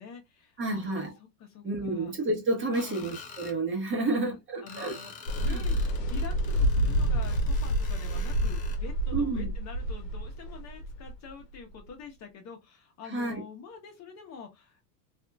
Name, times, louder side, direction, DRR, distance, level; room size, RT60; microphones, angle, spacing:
voice 1, 0.0-2.1 2.7-3.1 4.0-5.1 5.4-14.8, left 6 dB, 35° left, 0.8 m, -46 dB
voice 2, 0.6-1.1 1.6-5.0 5.5-5.6 9.1-9.5 13.1-13.4, right 2 dB, 25° right, 1.0 m, -30 dB
Screech, 2.7-3.6 4.7-8.8, left 6 dB, 20° left, 0.3 m, -47 dB
sound 1, 5.3-11.9, equal, 85° left, 0.8 m, -28 dB
2.7 x 2.5 x 2.2 m
hypercardioid pair, 95°, 47 cm